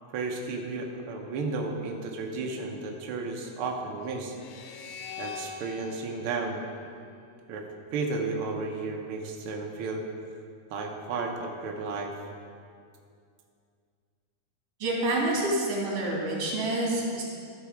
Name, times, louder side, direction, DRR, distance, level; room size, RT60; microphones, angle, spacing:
voice 1, 0.1-4.3 5.2-6.6 7.5-7.6 7.9-10.0 10.7-12.1, right 3 dB, 85° right, 1 dB, 1.1 m, -33 dB
sound 1, 4.3-7.6, left 6 dB, 80° left, 2.2 m, -43 dB
voice 2, 14.8-17.2, right 1 dB, 50° right, -3 dB, 2.9 m, -27 dB
13.0 x 6.1 x 4.9 m, 2.3 s
omnidirectional pair, 3.6 m